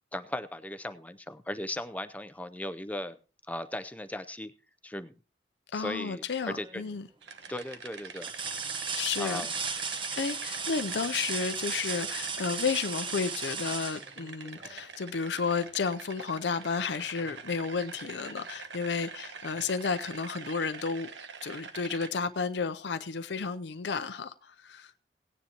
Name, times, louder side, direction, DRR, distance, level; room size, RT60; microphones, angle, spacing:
voice 1, 0.1-3.2 3.5-4.5 4.8-5.1 5.7-6.2 6.5-6.8 7.5-8.3 9.2-9.5, left 1 dB, 10° left, 0.6 m, -37 dB
voice 2, 5.7-7.1 8.9-9.4 9.7-21.1 21.4-24.9, left 5 dB, 70° left, 0.6 m, -32 dB
sound 1, 6.4-6.9 7.5-7.6 8.2-14.9 16.6-16.8 17.2-18.3 19.6-19.7, right 5 dB, 30° right, 1.1 m, -36 dB
sound 2, 7.2-22.1, right 5 dB, 85° right, 1.2 m, -45 dB
18.0 x 9.7 x 2.9 m
head